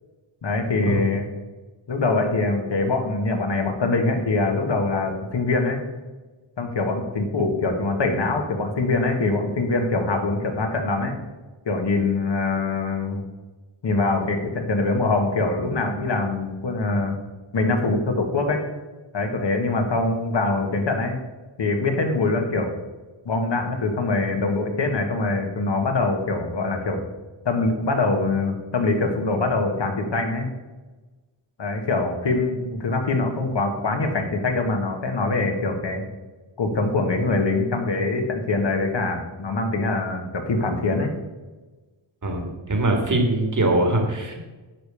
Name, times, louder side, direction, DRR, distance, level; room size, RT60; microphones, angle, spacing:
voice 1, 0.4-1.3 1.9-5.8 6.6-11.2 11.6-13.2 13.8-17.2 17.5-18.7 19.1-21.2 21.6-22.7 23.2-27.0 27.4-30.5 31.6-36.0 36.6-41.1, left 3 dB, 55° left, 4 dB, 1.6 m, -23 dB
voice 2, 42.2-44.4, right 1 dB, 40° right, 3 dB, 1.9 m, -22 dB
10.0 x 5.2 x 6.9 m, 1.2 s
wide cardioid pair, 150°, 49 cm